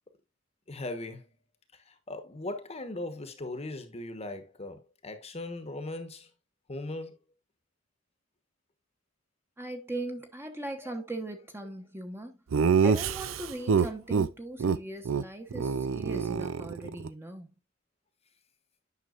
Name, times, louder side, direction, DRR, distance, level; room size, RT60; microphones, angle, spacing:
voice 1, 0.7-1.3 1.9-6.3 6.7-7.2 10.8-10.9, left 2 dB, 30° left, 1.1 m, -39 dB
voice 2, 9.6-12.4 12.8-17.5, right 1 dB, 10° right, 1.0 m, -39 dB
Laughter, 12.5-14.3 14.6-14.8 15.0-15.2 15.5-17.1, right 5 dB, 70° right, 0.5 m, -26 dB
9.3 x 5.9 x 2.4 m
head